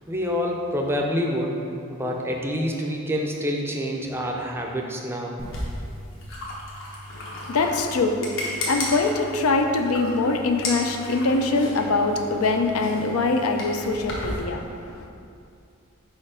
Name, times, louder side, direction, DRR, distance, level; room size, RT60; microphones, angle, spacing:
voice 1, 0.1-1.6 1.9-5.4, equal, 10° right, 0 dB, 0.4 m, -27 dB
sound 1, 5.4-14.4, left 1 dB, 60° left, 1.1 m, -34 dB
voice 2, 7.1-15.1, left 3 dB, 85° left, 5 dB, 0.5 m, -23 dB
4.7 x 4.3 x 4.9 m, 2.5 s
head